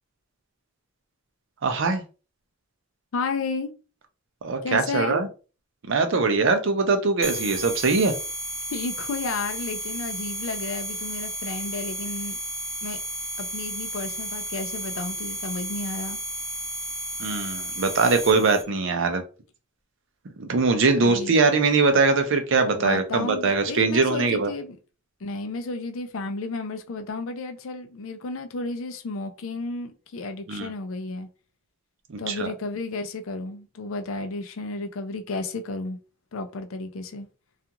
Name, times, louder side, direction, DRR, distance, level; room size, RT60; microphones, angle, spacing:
voice 1, 1.6-2.0 4.4-5.3 5.9-8.1 17.2-19.2 20.4-24.5 30.5-30.7 32.1-32.5, right 4 dB, 65° right, 0.5 m, -22 dB
voice 2, 3.1-3.7 4.6-5.2 8.7-12.4 12.8-13.0 13.4-16.2 21.0-21.4 22.8-24.8 25.2-31.3 32.2-36.0 36.3-37.3, left 3 dB, 80° left, 0.5 m, -32 dB
sound 1, 7.2-18.6, right 1 dB, ahead, 0.8 m, -33 dB
2.4 x 2.3 x 2.8 m
head